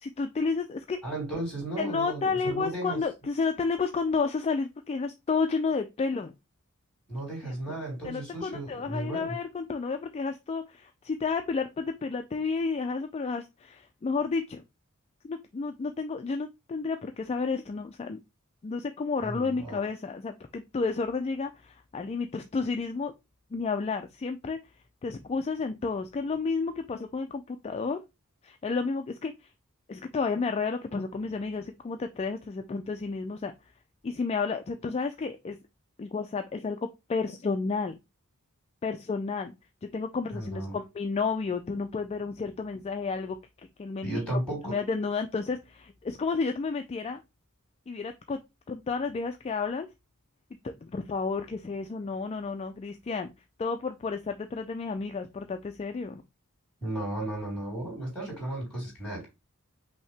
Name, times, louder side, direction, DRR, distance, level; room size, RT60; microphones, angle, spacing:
voice 1, 0.0-1.0 1.8-6.3 8.0-14.6 15.2-18.2 18.6-23.1 23.5-24.6 25.0-28.0 28.4-29.3 29.9-33.5 34.0-35.6 36.0-36.8 37.1-37.9 38.8-39.5 39.8-43.4 43.8-44.1 44.6-47.2 47.9-48.4 48.7-49.9 50.6-53.3 53.6-56.2, left 4 dB, 30° left, 0.3 m, -31 dB
voice 2, 1.0-3.0 7.1-9.4 19.2-19.8 40.3-40.8 44.0-44.8 56.8-59.3, right 1 dB, 5° left, 3.1 m, -34 dB
5.5 x 2.8 x 3.2 m
head